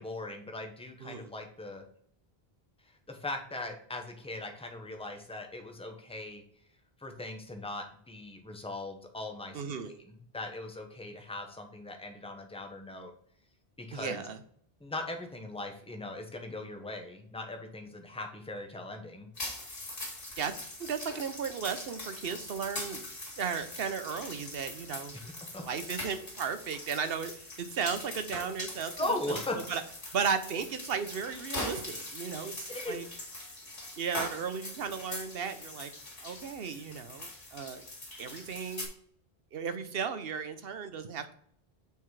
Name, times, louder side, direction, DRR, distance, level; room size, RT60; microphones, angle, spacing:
voice 1, 0.0-1.8 3.1-6.4 7.0-13.1 13.8-14.3 14.8-19.3 25.5-25.6 29.0-29.6 32.7-33.0, left 2 dB, 5° left, 4 dB, 0.9 m, -39 dB
voice 2, 1.0-1.3 9.5-10.0 13.9-14.4 20.4-20.5 20.8-23.1 23.4-25.2 25.6-29.4 29.7-29.8 30.1-33.0 34.0-35.9 36.2-37.8 38.2-38.9 39.5-41.3, right 6 dB, 70° right, 10 dB, 0.9 m, -35 dB
sound 1, 19.4-38.9, left 2 dB, 60° left, 2.2 m, -42 dB
7.1 x 3.9 x 4.7 m, 0.62 s
omnidirectional pair, 1.1 m